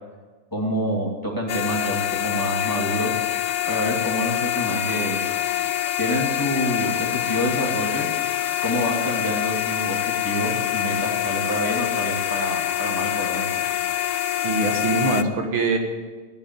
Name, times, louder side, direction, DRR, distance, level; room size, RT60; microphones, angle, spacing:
voice 1, 0.5-3.1 3.7-5.2 6.0-8.1 8.6-10.0 10.2-13.7, equal, 10° left, -1 dB, 2.3 m, -27 dB
sound 1, 1.5-15.2, left 12 dB, 80° left, 1.5 m, -25 dB
voice 2, 14.4-15.8, right 3 dB, 75° right, 3 dB, 2.4 m, -23 dB
14.5 x 8.8 x 9.0 m, 1.4 s
omnidirectional pair, 2.3 m